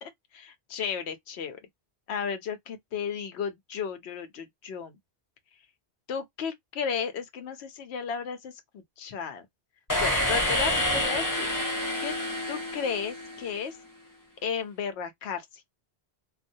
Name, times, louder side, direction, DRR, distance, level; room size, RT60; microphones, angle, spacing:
voice 1, 0.0-1.6 2.1-4.9 6.1-9.5 10.0-11.5 12.0-12.1 12.5-13.8 14.4-15.5, left 6 dB, 85° left, 0.9 m, -34 dB
sound 1, 9.9-13.7, left 1 dB, 20° left, 0.7 m, -28 dB
2.3 x 2.1 x 2.6 m
omnidirectional pair, 1.1 m